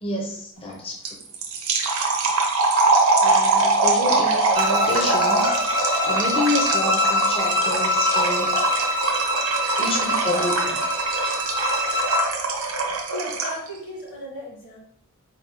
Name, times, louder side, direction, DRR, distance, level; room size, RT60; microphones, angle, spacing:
voice 1, 0.0-1.1 3.2-8.7 9.8-10.8, left 2 dB, 25° left, -1 dB, 0.6 m, -29 dB
sound 1, 1.1-13.7, right 3 dB, 75° right, 0.8 m, -23 dB
Bowed string instrument, 4.5-12.3, left 2 dB, 25° right, 0.5 m, -25 dB
voice 2, 13.1-14.8, equal, 60° left, -3 dB, 1.4 m, -35 dB
4.2 x 2.3 x 3.6 m, 0.67 s
head